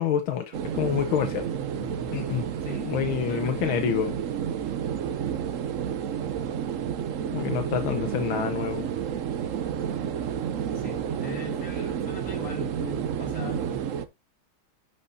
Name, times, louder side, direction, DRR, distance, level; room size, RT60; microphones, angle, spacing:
voice 1, 0.0-1.5 2.1-2.4 2.8-4.1 7.3-8.9, left 9 dB, 80° left, 1.6 m, -27 dB
sound 1, 0.5-14.1, right 8 dB, 80° right, 0.7 m, -30 dB
voice 2, 1.7-2.1 2.6-2.9 3.2-3.8 7.8-8.1 10.7-13.8, left 4 dB, 45° left, 2.9 m, -40 dB
11.0 x 5.4 x 2.6 m
omnidirectional pair, 2.2 m